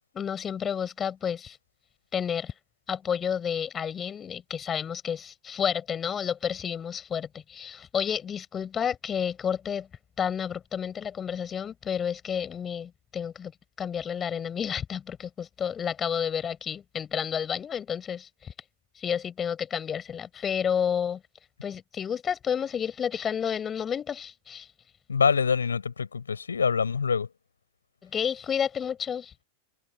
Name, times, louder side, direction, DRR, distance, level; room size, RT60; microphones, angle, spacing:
voice 1, 0.1-1.6 2.1-2.5 2.9-9.9 10.2-13.5 13.8-18.5 18.9-21.2 21.6-24.7 28.0-29.4, left 8 dB, 25° left, 7.9 m, -30 dB
voice 2, 25.1-27.3, left 6 dB, 75° left, 6.8 m, -25 dB
figure-of-eight pair, 90°, 0 cm